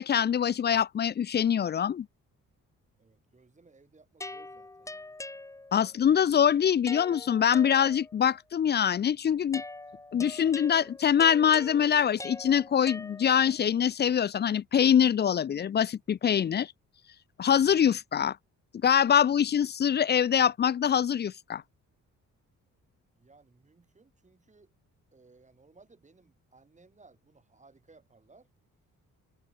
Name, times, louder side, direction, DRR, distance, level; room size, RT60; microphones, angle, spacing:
voice 1, 0.0-2.1 5.7-9.6 10.1-16.7 17.4-18.4 18.8-21.6, left 8 dB, 35° left, 0.4 m, -24 dB
voice 2, 3.0-5.2 23.1-24.7 25.1-28.5, right 3 dB, 20° right, 7.6 m, -60 dB
sound 1, 4.2-6.0 6.9-8.3 9.5-13.6, left 2 dB, 10° left, 0.7 m, -43 dB
cardioid pair, 140°, 32 cm